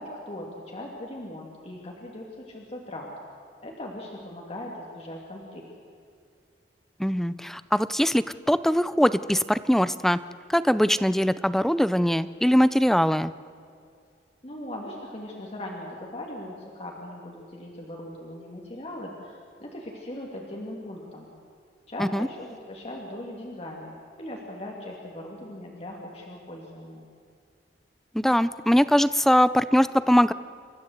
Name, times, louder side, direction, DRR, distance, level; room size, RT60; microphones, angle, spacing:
voice 1, 0.0-3.1 3.6-5.6 14.4-21.3 21.9-27.1, left 1 dB, 35° left, -1 dB, 2.6 m, -39 dB
voice 2, 7.0-10.2 10.5-13.3 22.0-22.3 28.1-30.3, equal, ahead, 15 dB, 0.4 m, -22 dB
28.5 x 14.0 x 8.0 m, 2.3 s
head